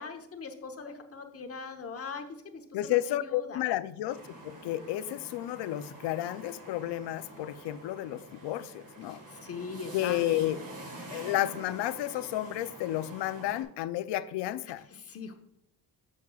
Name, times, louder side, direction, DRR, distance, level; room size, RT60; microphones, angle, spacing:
voice 1, 0.0-3.6 9.1-10.2 14.9-15.3, left 5 dB, 35° left, 1.0 m, -41 dB
voice 2, 2.7-4.2 4.4-9.2 9.9-10.6 11.1-14.9, left 14 dB, 85° left, 0.6 m, -31 dB
sound 1, 4.1-13.6, right 1 dB, 50° right, 2.6 m, -47 dB
10.5 x 7.2 x 2.3 m
cardioid pair, 140°, 40 cm